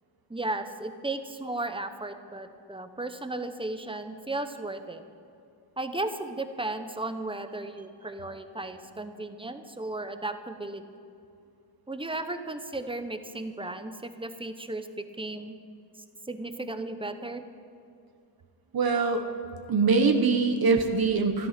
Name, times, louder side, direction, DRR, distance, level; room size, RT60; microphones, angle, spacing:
voice 1, 0.3-5.0 5.8-10.8 11.9-15.5 16.3-17.4, right 2 dB, 10° right, 8 dB, 0.8 m, -35 dB
voice 2, 18.7-19.2 19.7-21.5, right 4 dB, 50° right, 5 dB, 1.2 m, -23 dB
14.0 x 13.0 x 5.9 m, 2.6 s
wide cardioid pair, 120°, 48 cm